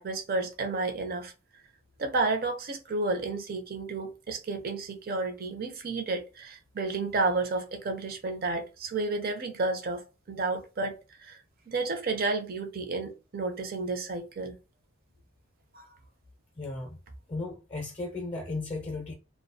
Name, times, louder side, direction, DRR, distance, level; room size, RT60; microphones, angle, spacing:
voice 1, 0.0-1.3 2.0-10.0 10.3-11.4 11.7-14.5 15.7-15.8, right 3 dB, 50° right, 0.5 m, -31 dB
voice 2, 16.6-17.0 17.3-19.1, left 2 dB, 30° left, 0.5 m, -35 dB
2.3 x 2.1 x 2.6 m
head